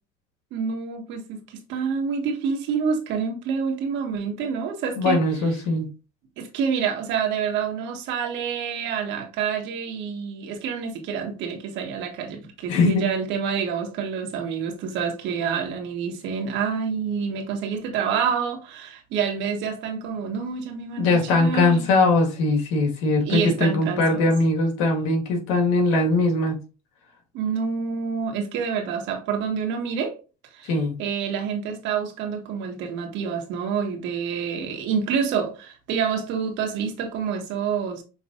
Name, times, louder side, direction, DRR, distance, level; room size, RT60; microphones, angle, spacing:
voice 1, 0.5-5.2 6.4-21.9 23.2-24.2 27.3-30.1 30.5-30.7 31.0-38.0, right 6 dB, 70° right, 1.5 m, -27 dB
voice 2, 5.0-5.9 12.7-13.0 21.0-26.6 30.6-30.9, left 2 dB, 80° left, 1.7 m, -21 dB
6.8 x 3.1 x 2.5 m
supercardioid pair, 100°, 20 cm